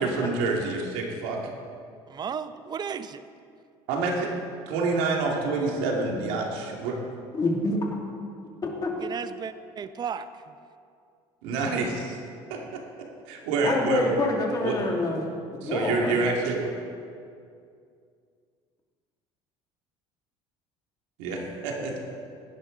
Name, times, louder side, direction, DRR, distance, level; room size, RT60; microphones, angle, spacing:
voice 1, 0.0-1.4 3.9-4.3 4.7-7.0 11.4-12.2 12.5-12.8 13.3-14.2 14.6-14.8 15.6-16.7 21.2-22.0, right 3 dB, 85° right, 0 dB, 2.4 m, -27 dB
voice 2, 2.1-3.2 9.0-10.6, right 7 dB, 35° right, 12 dB, 0.7 m, -34 dB
voice 3, 7.3-7.8 8.6-8.9 13.6-15.2 15.6-16.2, left 2 dB, 30° left, 0 dB, 2.6 m, -27 dB
17.0 x 10.5 x 4.0 m, 2.3 s
supercardioid pair, 100°, 13 cm